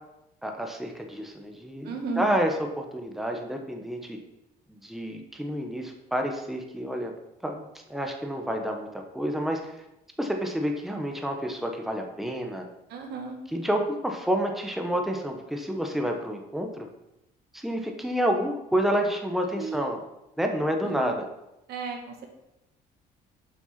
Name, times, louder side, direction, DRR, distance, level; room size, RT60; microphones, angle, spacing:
voice 1, 0.4-4.2 4.7-7.1 7.4-7.6 7.9-9.8 10.2-12.7 13.5-16.9 17.5-20.0 20.4-21.2, equal, ahead, 3 dB, 1.2 m, -29 dB
voice 2, 1.8-2.3 12.9-13.4 19.5-19.9 20.8-21.1 21.7-22.3, right 4 dB, 75° right, 3 dB, 1.9 m, -34 dB
7.8 x 5.9 x 6.0 m, 0.90 s
cardioid pair, 110°, 17 cm